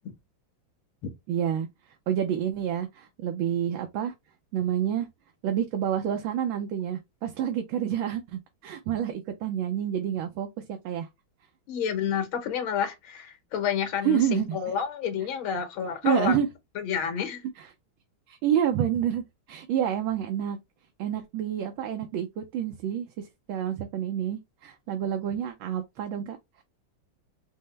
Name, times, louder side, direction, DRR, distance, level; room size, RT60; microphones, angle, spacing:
voice 1, 1.3-1.7 2.1-4.1 4.5-5.1 5.4-11.1 14.0-14.6 16.0-16.5 17.6-17.7 18.3-20.6 21.0-26.6, right 9 dB, 80° right, 1.5 m, -28 dB
voice 2, 11.7-16.3 16.7-17.4, left 7 dB, 80° left, 1.9 m, -29 dB
5.4 x 2.1 x 3.2 m
omnidirectional pair, 2.2 m